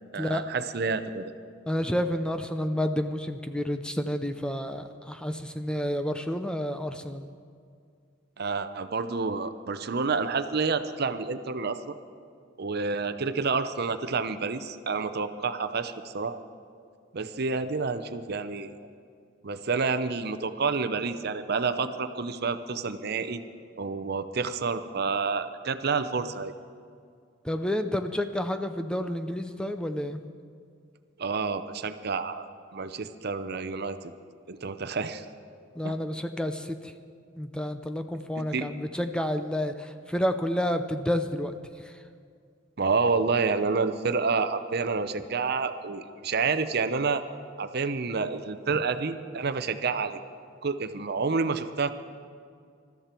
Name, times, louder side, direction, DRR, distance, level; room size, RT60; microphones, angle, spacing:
voice 1, 0.1-1.3 8.4-11.9 12.6-16.4 17.1-18.7 19.4-23.4 23.8-26.5 31.2-32.5 32.7-34.1 34.5-35.3 35.8-35.9 38.4-38.7 42.8-47.2 47.6-50.2 50.6-51.9, right 4 dB, 55° right, 11 dB, 0.7 m, -29 dB
voice 2, 1.7-7.3 27.4-30.2 35.8-36.8 37.4-41.5, left 1 dB, 5° left, 8 dB, 0.6 m, -30 dB
21.0 x 13.0 x 4.5 m, 2.2 s
head